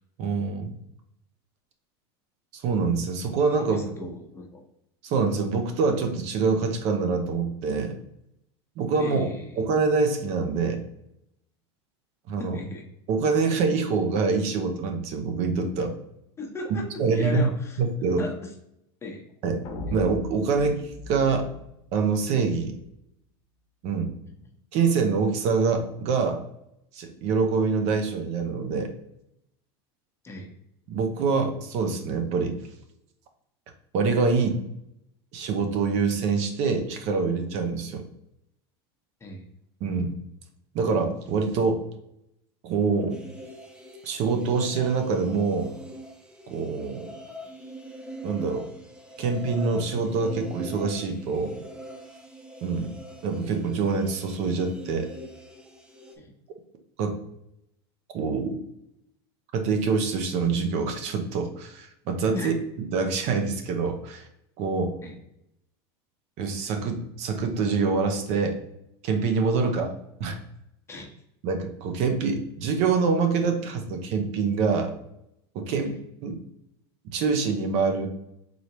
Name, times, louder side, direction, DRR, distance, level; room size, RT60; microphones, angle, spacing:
voice 1, 0.2-0.7 2.5-4.1 5.0-7.9 8.8-10.8 12.3-12.6 13.1-15.9 17.0-17.5 17.8-18.3 19.4-19.6 19.9-21.5 21.9-22.7 23.8-24.1 24.7-26.4 26.9-28.9 30.9-32.6 33.9-34.6 35.3-38.1 39.8-40.1 40.7-41.8 42.6-43.2 44.0-45.7 46.5-47.1 48.2-48.7 49.2-51.6 52.6-52.9 53.2-55.1 57.0-57.2 58.1-58.6 59.5-62.5 62.9-64.3 64.6-65.0 66.4-68.6 69.0-69.9 70.2-70.4 71.4-74.9 75.5-75.9 76.2-76.4 77.0-78.1, right 4 dB, 55° right, 6 dB, 0.7 m, -25 dB
voice 2, 3.6-4.6 9.0-9.6 12.4-12.8 16.4-16.9 17.1-17.8 18.2-18.5 19.0-19.2 19.9-20.0 30.2-30.5 39.2-39.5 52.8-52.9 56.2-56.3 62.3-62.5 65.0-65.2 69.6-69.9 70.9-71.1 75.8-76.0, left 2 dB, 20° left, 0 dB, 0.9 m, -37 dB
sound 1, 19.6-22.7, left 1 dB, 55° left, 0.9 m, -38 dB
sound 2, 43.1-56.2, right 1 dB, 5° right, 0.6 m, -43 dB
3.8 x 3.3 x 3.0 m, 0.79 s
supercardioid pair, 120°, 13 cm